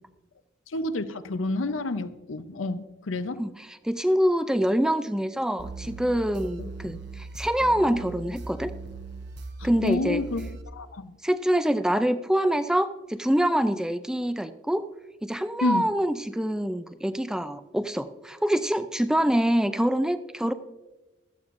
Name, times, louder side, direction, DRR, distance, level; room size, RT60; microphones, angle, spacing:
voice 1, 0.7-3.4 9.8-11.1 15.6-15.9, left 2 dB, 85° left, 11 dB, 0.7 m, -29 dB
voice 2, 3.4-8.7 9.6-10.2 11.2-14.8 15.2-20.5, equal, 5° right, 10 dB, 0.4 m, -25 dB
sound 1, 5.6-10.6, right 3 dB, 60° right, 1.0 m, -39 dB
16.0 x 13.0 x 2.6 m, 1.1 s
head